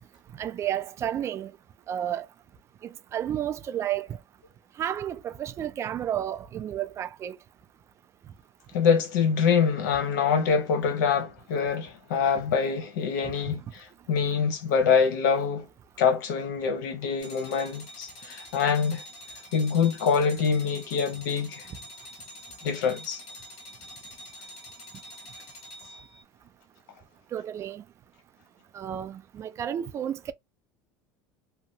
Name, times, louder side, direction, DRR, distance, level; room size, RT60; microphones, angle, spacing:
voice 1, 0.4-1.5 1.9-2.3 3.1-4.2 4.8-7.4 13.5-13.6 27.3-27.8 28.7-30.3, right 10 dB, 30° right, 0.3 m, -31 dB
voice 2, 8.7-15.7 16.0-19.0 19.5-21.7 22.6-23.2, left 6 dB, 85° left, 0.9 m, -25 dB
sound 1, 17.2-26.2, equal, 60° left, 1.3 m, -46 dB
2.8 x 2.3 x 2.6 m
supercardioid pair, 135°, 10 cm